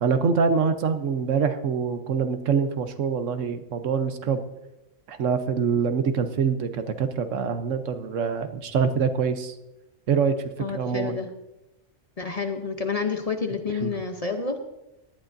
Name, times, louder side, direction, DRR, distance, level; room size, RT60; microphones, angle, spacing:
voice 1, 0.0-4.4 5.1-9.5 10.1-10.3 10.7-11.2 13.8-13.9, right 6 dB, 80° right, 9 dB, 1.2 m, -25 dB
voice 2, 10.6-11.3 12.2-14.6, left 5 dB, 35° left, 6 dB, 0.7 m, -29 dB
17.5 x 11.5 x 2.6 m, 0.94 s
omnidirectional pair, 1.3 m